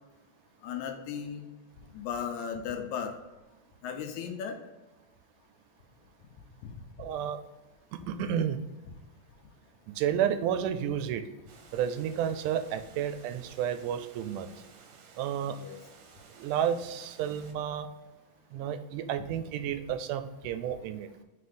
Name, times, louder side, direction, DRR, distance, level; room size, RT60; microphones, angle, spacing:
voice 1, 0.6-1.4 1.9-3.1 3.8-4.6 6.6-6.7 15.6-15.8, left 7 dB, 80° left, 5 dB, 1.9 m, -35 dB
voice 2, 7.0-7.4 7.9-8.6 9.9-11.2 11.7-14.5 15.2-15.6 16.4-17.9 18.5-21.1, right 9 dB, 90° right, 9 dB, 2.1 m, -31 dB
Water, 11.5-17.5, right 5 dB, 70° right, 1.9 m, -55 dB
4.8 x 4.3 x 5.0 m, 1.1 s
omnidirectional pair, 3.5 m